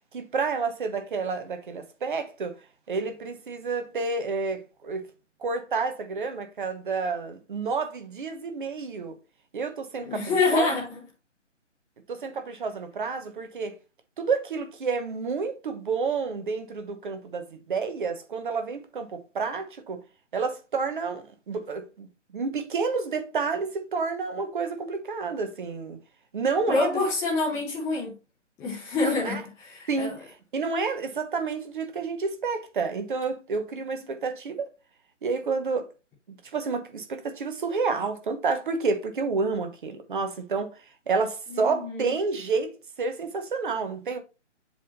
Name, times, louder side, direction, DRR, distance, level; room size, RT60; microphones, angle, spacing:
voice 1, 0.1-2.5 2.9-5.0 5.4-9.2 9.5-10.7 12.1-13.7 14.2-20.0 20.3-22.1 22.3-26.0 26.3-27.0 29.0-29.4 29.9-30.2 30.5-34.7 35.2-35.9 36.3-40.7 41.1-42.7 43.0-44.2, right 4 dB, 45° right, 1.2 m, -29 dB
voice 2, 10.0-11.0 26.7-28.1 28.6-30.1 41.5-42.1, left 3 dB, 10° left, 1.0 m, -27 dB
7.6 x 3.5 x 4.1 m
figure-of-eight pair, 140°, 37 cm